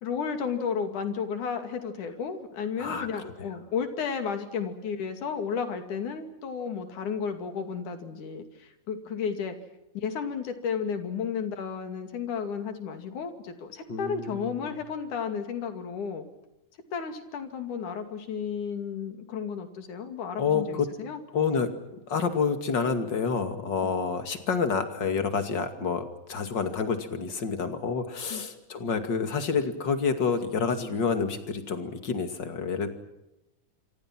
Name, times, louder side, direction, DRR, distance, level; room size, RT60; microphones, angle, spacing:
voice 1, 0.0-9.6 10.0-16.3 16.9-21.2 28.3-28.4, left 6 dB, 85° left, 7 dB, 4.0 m, -33 dB
voice 2, 13.9-14.7 20.4-20.9 21.3-21.7 22.1-32.9, left 5 dB, 40° left, 8 dB, 2.7 m, -28 dB
27.5 x 26.0 x 6.1 m, 0.93 s
omnidirectional pair, 3.4 m